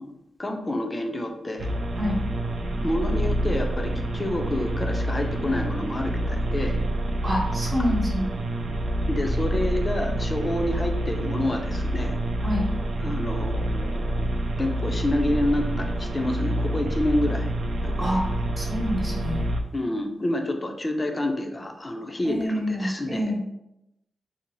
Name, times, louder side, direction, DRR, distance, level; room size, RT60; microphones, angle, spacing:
voice 1, 0.0-1.7 2.8-6.8 9.1-12.2 13.0-14.3 14.6-17.4 17.8-18.1 19.7-23.3, left 1 dB, 30° left, 3 dB, 0.5 m, -28 dB
sound 1, 1.6-19.6, right 1 dB, 75° right, 0.4 m, -27 dB
voice 2, 7.2-8.2 12.4-12.6 18.0-19.4 22.3-23.4, equal, 40° right, -2 dB, 0.9 m, -27 dB
2.6 x 2.0 x 3.0 m, 0.86 s
supercardioid pair, 45°, 0 cm